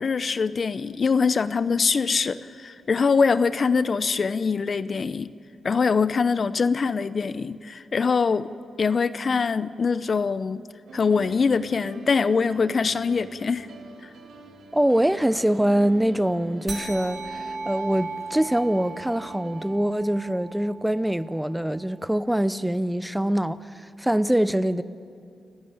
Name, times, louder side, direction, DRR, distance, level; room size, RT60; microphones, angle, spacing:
voice 1, 0.0-5.3 5.6-8.5 8.8-10.7 10.9-13.7 14.0-14.1, left 5 dB, 50° left, 0.6 m, -23 dB
sound 1, 10.9-19.8, right 4 dB, 75° right, 2.0 m, -45 dB
voice 2, 14.7-24.8, right 1 dB, 5° right, 0.7 m, -24 dB
sound 2, 16.7-21.6, right 3 dB, 40° right, 3.4 m, -37 dB
29.5 x 12.0 x 8.9 m
supercardioid pair, 50°, 0 cm